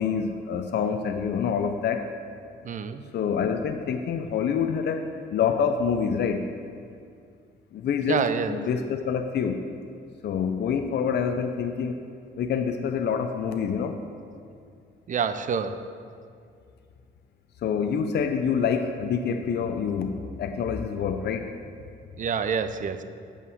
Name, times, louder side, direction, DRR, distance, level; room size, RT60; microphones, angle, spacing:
voice 1, 0.0-2.1 3.1-5.0 5.3-6.4 7.7-9.6 10.2-12.0 12.4-14.0 17.6-21.5, left 6 dB, 55° left, 6 dB, 0.5 m, -26 dB
voice 2, 2.6-3.0 8.1-8.6 15.1-15.8 22.2-23.0, right 6 dB, 40° right, 11 dB, 0.5 m, -27 dB
7.3 x 5.6 x 6.4 m, 2.3 s
cardioid pair, 90°, 20 cm